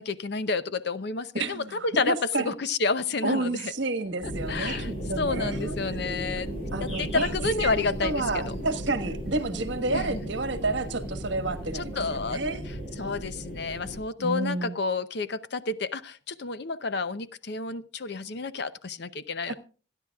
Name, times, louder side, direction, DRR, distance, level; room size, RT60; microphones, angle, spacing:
voice 1, 0.0-2.1 2.4-3.7 4.5-6.5 7.0-8.2 9.9-10.2 11.7-12.4 13.0-19.5, left 4 dB, 55° left, 0.7 m, -30 dB
voice 2, 1.3-2.5 3.2-4.8 5.1-5.8 6.7-7.3 7.6-7.7 8.0-12.7 14.2-14.8 19.5-19.6, right 2 dB, 60° right, 1.4 m, -30 dB
sound 1, 4.2-14.0, equal, 30° left, 7.9 m, -35 dB
26.5 x 10.0 x 2.4 m
head